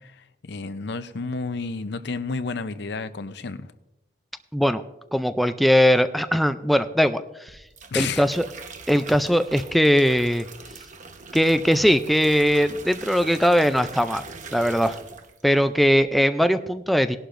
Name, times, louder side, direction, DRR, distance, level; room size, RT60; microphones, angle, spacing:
voice 1, 0.0-3.7 7.9-8.2, left 4 dB, 65° left, 12 dB, 0.6 m, -31 dB
voice 2, 5.1-7.6 8.0-8.4 8.9-10.5 11.3-14.2 14.5-15.0 15.4-17.2, equal, ahead, 9 dB, 0.3 m, -20 dB
sound 1, 7.5-15.5 15.8-16.1, right 4 dB, 45° right, 1.1 m, -42 dB
18.5 x 11.5 x 2.5 m, 0.94 s
head